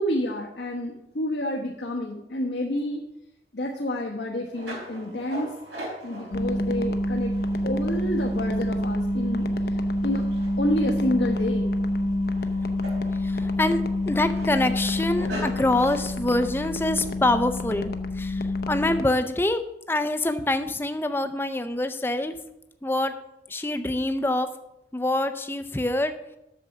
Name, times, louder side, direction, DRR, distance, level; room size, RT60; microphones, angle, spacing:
voice 1, 0.0-3.0 3.5-5.5 6.0-7.3 7.6-10.3 10.6-11.7, left 1 dB, 75° left, -1 dB, 1.2 m, -29 dB
sound 1, 4.5-16.0, right 1 dB, 90° right, 4.2 m, -42 dB
sound 2, 6.3-19.0, left 1 dB, 55° left, 0.7 m, -27 dB
voice 2, 13.2-19.6 19.9-22.3 22.8-23.1 23.5-24.5 24.9-26.1, left 1 dB, 15° left, 9 dB, 0.5 m, -25 dB
8.4 x 6.9 x 6.3 m, 0.86 s
head